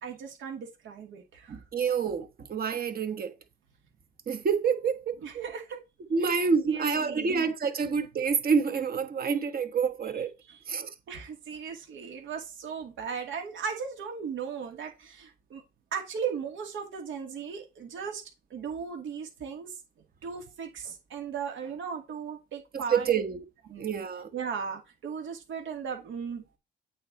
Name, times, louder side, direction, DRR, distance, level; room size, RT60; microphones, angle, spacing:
voice 1, 0.0-1.6 5.2-5.8 6.2-7.4 10.5-10.6 11.1-15.6 15.9-18.2 18.5-19.8 20.2-23.1 23.7-23.9 24.3-26.6, right 6 dB, 75° right, 2.3 m, -37 dB
voice 2, 1.5-3.3 4.3-5.5 6.1-10.3 10.7-10.9 22.7-23.4 23.8-24.3, right 6 dB, 50° right, 1.4 m, -28 dB
8.6 x 4.4 x 4.2 m
cardioid pair, 90°, 20 cm